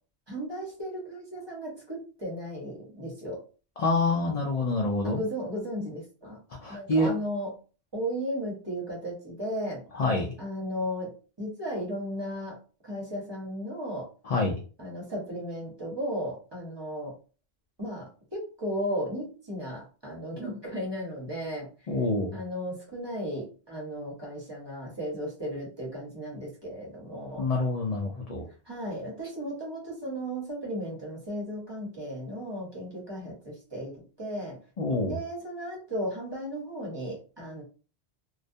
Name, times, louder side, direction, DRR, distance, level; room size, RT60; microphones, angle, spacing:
voice 1, 0.3-3.4 5.0-6.4 6.7-7.5 7.9-9.8 10.4-14.1 14.8-17.1 17.8-21.7 22.3-27.5 28.7-34.6 35.1-37.6, equal, 25° right, -3 dB, 0.9 m, -35 dB
voice 2, 3.8-5.2 6.5-7.2 9.9-10.3 14.2-14.6 21.9-22.4 27.4-28.5 34.8-35.2, left 2 dB, 55° left, 0 dB, 0.4 m, -27 dB
2.3 x 2.1 x 2.6 m, 0.36 s
omnidirectional pair, 1.1 m